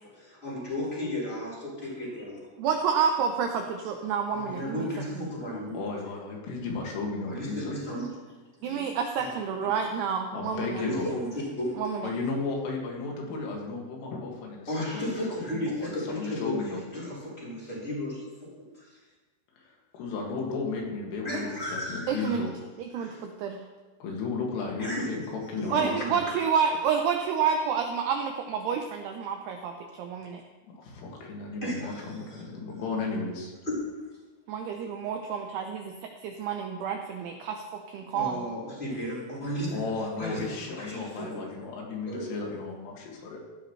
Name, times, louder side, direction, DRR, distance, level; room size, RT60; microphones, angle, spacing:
voice 1, 0.0-2.5 4.3-5.8 7.2-8.1 8.6-8.8 9.2-9.3 10.8-11.8 14.7-19.0 21.2-22.3 23.0-23.2 24.8-25.3 25.6-25.9 26.3-26.4 31.6-32.2 33.7-33.8 38.1-39.8 40.2-41.4 42.1-42.4, left 1 dB, 15° left, -6 dB, 3.9 m, -34 dB
voice 2, 2.6-4.9 5.2-5.3 8.6-10.8 11.8-12.1 22.1-22.5 22.8-23.6 25.7-30.4 34.5-38.4, right 6 dB, 90° right, 4 dB, 2.3 m, -29 dB
voice 3, 5.7-7.7 10.3-11.1 12.0-15.0 15.3-16.8 19.6-22.5 24.0-25.2 25.5-26.2 30.7-33.5 39.7-43.4, left 4 dB, 80° left, -1 dB, 4.7 m, -34 dB
15.5 x 12.0 x 3.2 m, 1.3 s
omnidirectional pair, 5.7 m